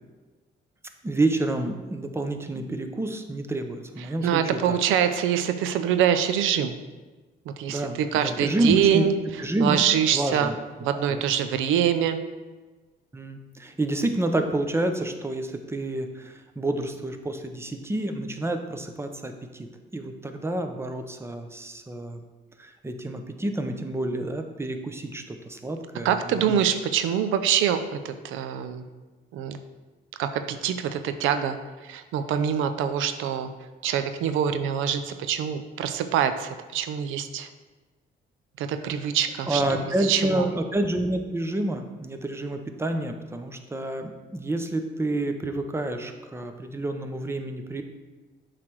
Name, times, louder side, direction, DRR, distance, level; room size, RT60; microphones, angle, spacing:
voice 1, 1.0-4.8 7.7-9.1 9.4-9.8 10.1-10.5 10.9-11.2 13.1-19.7 19.9-22.2 22.6-26.8 39.5-47.8, right 1 dB, 10° right, 6 dB, 0.7 m, -29 dB
voice 2, 4.2-6.7 7.5-9.1 9.6-10.5 10.8-12.2 26.0-28.8 29.3-29.6 30.2-31.6 31.8-33.5 33.8-37.5 38.6-39.6 40.0-40.4, right 9 dB, 90° right, 9 dB, 0.5 m, -24 dB
7.4 x 3.3 x 6.0 m, 1.2 s
cardioid pair, 90°, 20 cm